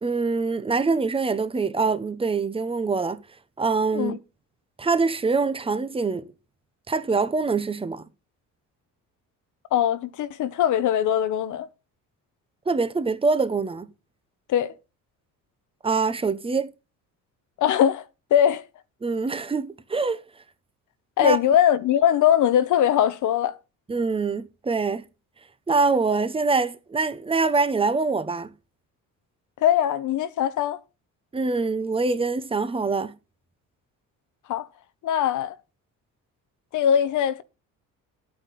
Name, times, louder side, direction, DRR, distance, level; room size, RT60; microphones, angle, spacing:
voice 1, 0.0-3.2 3.6-4.2 4.8-6.3 6.9-8.0 12.7-13.9 15.8-16.7 19.0-20.2 21.2-21.4 23.9-25.0 25.7-28.5 31.3-33.2, right 4 dB, 15° right, 0.9 m, -24 dB
voice 2, 9.7-11.7 14.5-14.7 17.6-18.0 18.3-18.6 21.2-23.6 29.6-30.8 34.5-34.7 35.0-35.6 36.7-37.4, left 10 dB, 65° left, 1.0 m, -21 dB
12.0 x 8.9 x 4.2 m
cardioid pair, 130°, 32 cm